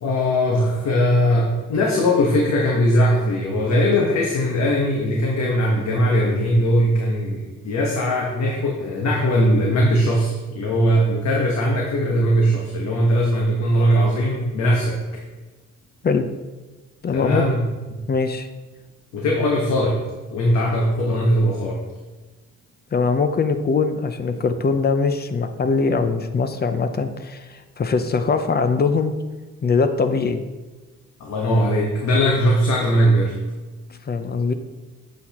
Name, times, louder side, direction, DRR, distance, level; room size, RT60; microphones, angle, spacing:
voice 1, 0.0-15.0 17.1-17.7 19.1-20.0 20.3-21.8 31.2-33.3, equal, 65° left, -2 dB, 1.3 m, -20 dB
voice 2, 17.0-17.4 18.1-18.5 22.9-29.1 29.6-30.4 33.9-34.5, left 4 dB, 30° left, 9 dB, 0.6 m, -22 dB
7.9 x 6.3 x 3.0 m, 1.2 s
cardioid pair, 90°, 30 cm